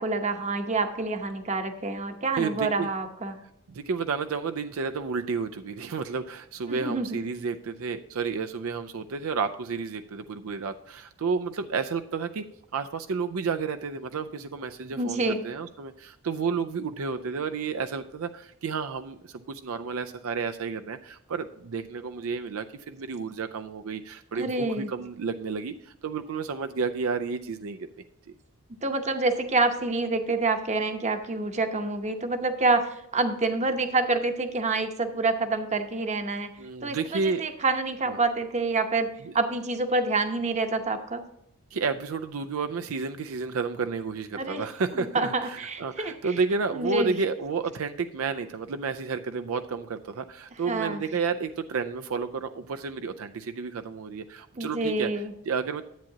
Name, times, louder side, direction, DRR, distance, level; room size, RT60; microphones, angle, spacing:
voice 1, 0.0-3.4 6.7-7.2 15.0-15.4 24.3-24.9 28.8-36.5 36.8-41.3 44.3-44.6 44.9-46.1 46.7-47.1 50.7-51.0 54.6-55.3, right 3 dB, 35° right, 7 dB, 0.9 m, -27 dB
voice 2, 2.4-2.9 3.7-12.4 12.7-27.8 36.6-37.5 38.1-38.2 39.2-39.3 41.7-55.1 55.4-55.8, right 5 dB, 75° right, 8 dB, 0.5 m, -31 dB
10.5 x 8.4 x 2.8 m, 0.80 s
head